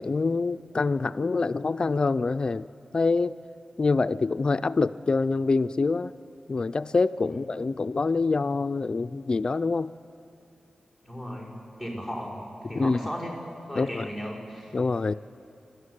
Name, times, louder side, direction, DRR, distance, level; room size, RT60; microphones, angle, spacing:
voice 1, 0.0-2.7 2.9-3.4 3.8-6.1 6.5-9.9 12.7-13.0 13.8-14.1 14.7-15.1, left 3 dB, 40° left, 13 dB, 0.4 m, -25 dB
voice 2, 11.0-12.4 12.7-13.4 13.7-14.7, equal, 25° right, -5 dB, 5.8 m, -36 dB
27.5 x 13.0 x 9.9 m, 2.6 s
wide cardioid pair, 135°, 2 cm